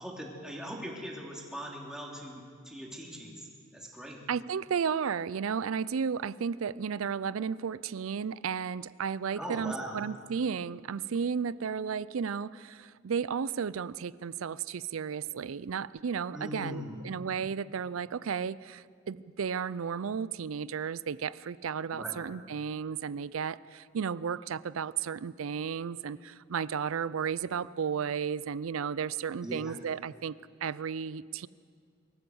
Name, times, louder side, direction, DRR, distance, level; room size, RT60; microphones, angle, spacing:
voice 1, 0.0-2.4 2.6-3.5 3.7-4.2 9.4-10.0 16.3-17.0 21.9-22.2 29.4-29.7, equal, 5° right, -2 dB, 3.0 m, -40 dB
voice 2, 4.3-30.3 30.6-31.5, right 6 dB, 75° right, 19 dB, 0.4 m, -33 dB
23.5 x 14.5 x 7.8 m, 2.1 s
head